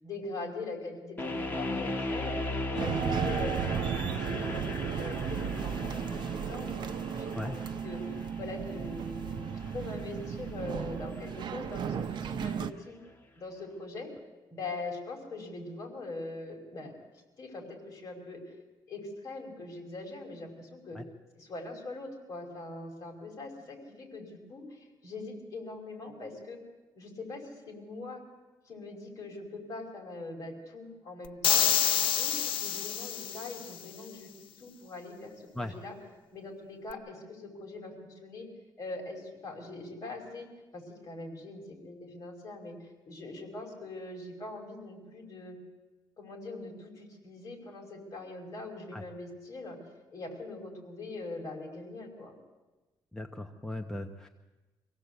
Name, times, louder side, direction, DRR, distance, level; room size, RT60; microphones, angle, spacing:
voice 1, 0.0-2.4 2.8-4.0 4.2-8.0 8.4-13.0 13.4-14.1 14.5-16.9 17.4-18.4 18.9-21.0 21.3-26.6 27.0-28.2 28.7-31.7 32.1-34.3 34.6-36.0 36.3-38.5 38.8-40.5 40.7-45.6 46.2-49.8 50.1-52.3, left 2 dB, 40° left, 1 dB, 5.2 m, -42 dB
sound 1, 1.2-12.2, left 2 dB, 20° left, 2.1 m, -38 dB
sound 2, 2.7-12.7, right 7 dB, 60° right, 0.8 m, -34 dB
sound 3, 31.4-33.7, left 10 dB, 75° left, 0.7 m, -27 dB
voice 2, 53.1-54.3, left 1 dB, 5° left, 4 dB, 0.9 m, -38 dB
25.0 x 16.5 x 8.1 m, 1.2 s
cardioid pair, 140°, 9 cm